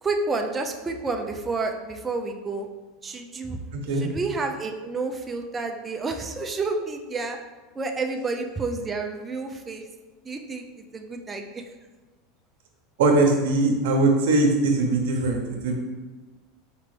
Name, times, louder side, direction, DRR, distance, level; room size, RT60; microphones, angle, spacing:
voice 1, 0.0-2.7 3.0-3.6 3.9-7.4 7.7-9.8 10.2-10.6 10.9-11.6, right 3 dB, 20° right, 4 dB, 0.5 m, -30 dB
voice 2, 13.0-15.7, right 2 dB, 75° right, 2 dB, 0.9 m, -21 dB
4.9 x 3.3 x 3.2 m, 1.2 s
supercardioid pair, 120°, 0 cm